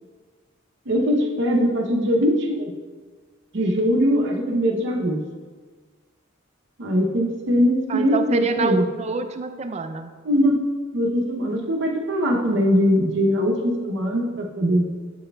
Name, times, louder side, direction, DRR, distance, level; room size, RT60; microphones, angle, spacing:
voice 1, 0.9-2.7 3.5-5.2 6.8-8.8 10.2-10.6 10.9-14.8, equal, 60° right, 0 dB, 0.7 m, -21 dB
voice 2, 7.9-10.1, right 4 dB, 35° right, 8 dB, 0.3 m, -26 dB
7.5 x 6.2 x 2.2 m, 1.5 s
head